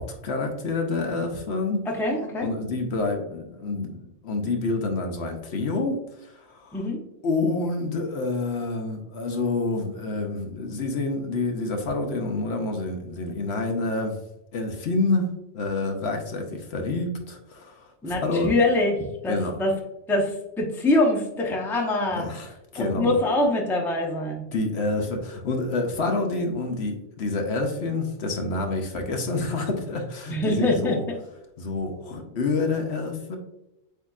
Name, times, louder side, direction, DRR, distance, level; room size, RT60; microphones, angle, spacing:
voice 1, 0.0-1.9 2.4-6.8 7.2-14.2 14.5-15.3 15.5-18.5 19.3-19.6 22.1-23.2 24.5-31.0 31.6-33.4, left 3 dB, 65° left, 4 dB, 0.9 m, -28 dB
voice 2, 1.9-2.5 6.7-7.0 18.0-19.7 20.1-22.3 22.8-24.4 30.3-31.2, left 2 dB, ahead, -1 dB, 0.6 m, -24 dB
8.0 x 2.8 x 2.4 m, 0.88 s
omnidirectional pair, 1.3 m